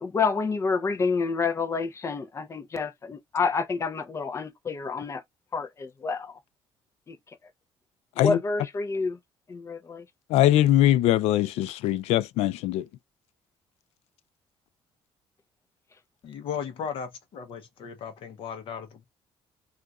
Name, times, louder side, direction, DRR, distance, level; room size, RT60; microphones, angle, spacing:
voice 1, 0.0-5.2 5.5-6.3 7.1-7.2 8.2-9.2 9.5-10.1, left 4 dB, 25° left, 0.6 m, -28 dB
voice 2, 10.3-12.9, left 13 dB, 85° left, 0.4 m, -22 dB
voice 3, 16.2-19.1, left 7 dB, 60° left, 0.8 m, -36 dB
2.4 x 2.3 x 4.0 m
cardioid pair, 125°, 10 cm